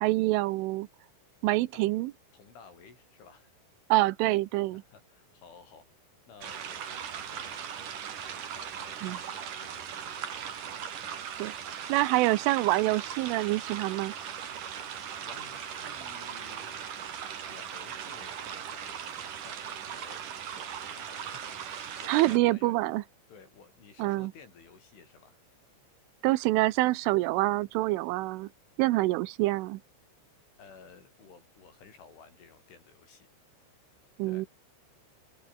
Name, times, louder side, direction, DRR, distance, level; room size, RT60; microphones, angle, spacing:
voice 1, 0.0-0.9 1.4-2.1 3.9-4.8 9.0-9.2 11.4-11.5 11.9-14.1 22.1-23.0 24.0-24.3 26.2-28.5 28.8-29.8 34.2-34.5, right 19 dB, 90° right, 3.3 m, -26 dB
voice 2, 2.3-3.5 4.7-5.9 6.3-7.9 8.2-10.9 14.5-16.9 17.4-22.9 23.3-25.4 30.6-33.3 34.2-34.5, left 5 dB, 70° left, 8.8 m, -55 dB
sound 1, 6.4-22.4, right 8 dB, 50° right, 3.4 m, -39 dB
open air
omnidirectional pair, 5.7 m